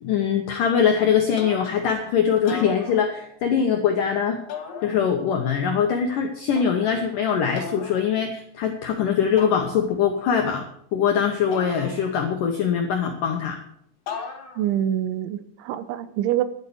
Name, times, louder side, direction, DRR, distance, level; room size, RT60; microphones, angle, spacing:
voice 1, 0.0-4.4 4.8-10.6 10.9-13.6, left 7 dB, 80° left, 3 dB, 1.9 m, -22 dB
sound 1, 1.4-2.0 2.4-3.5 4.5-5.4 6.6-7.1 7.6-8.1 9.4-10.2 11.5-12.5 14.1-14.8, left 5 dB, 55° left, 3.2 m, -38 dB
voice 2, 14.6-16.4, right 11 dB, 90° right, 13 dB, 3.1 m, -25 dB
12.0 x 8.4 x 7.1 m, 0.70 s
omnidirectional pair, 5.3 m